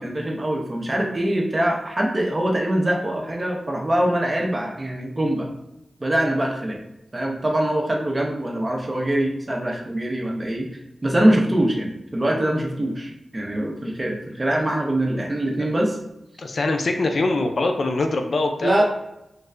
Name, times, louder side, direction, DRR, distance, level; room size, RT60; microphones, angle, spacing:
voice 1, 0.0-5.5 6.0-6.8 7.1-10.7 11.0-16.0 18.6-18.8, right 1 dB, 25° right, 1 dB, 0.6 m, -23 dB
voice 2, 16.4-18.8, left 2 dB, 60° left, 4 dB, 0.3 m, -23 dB
3.2 x 2.1 x 3.7 m, 0.87 s
wide cardioid pair, 85°, 0 cm